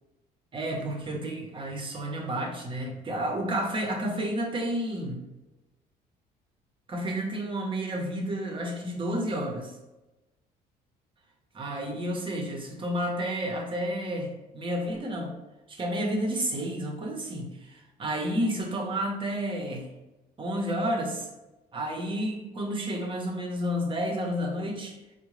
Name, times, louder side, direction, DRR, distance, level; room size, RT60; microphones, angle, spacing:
voice 1, 0.5-5.2 6.9-9.7 11.5-15.3 15.7-19.9 20.4-21.3 21.7-25.0, equal, 30° right, 2 dB, 0.7 m, -31 dB
3.6 x 2.1 x 3.1 m, 1.1 s
cardioid pair, 110°, 17 cm